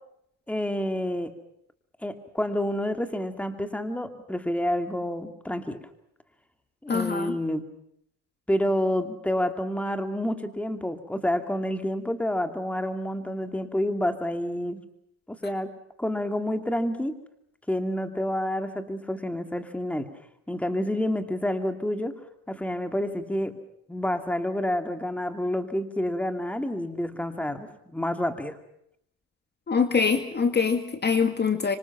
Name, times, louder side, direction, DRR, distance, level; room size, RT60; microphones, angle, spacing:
voice 1, 0.5-1.3 2.0-5.8 6.8-7.6 8.5-14.8 15.3-15.7 16.0-17.1 17.7-20.1 20.5-22.2 22.5-23.6 23.9-28.6, left 1 dB, 5° left, 8 dB, 2.5 m, -28 dB
voice 2, 6.9-7.4 29.7-31.8, left 5 dB, 30° left, 8 dB, 2.0 m, -24 dB
25.5 x 25.5 x 6.0 m, 0.74 s
cardioid pair, 100°, 33 cm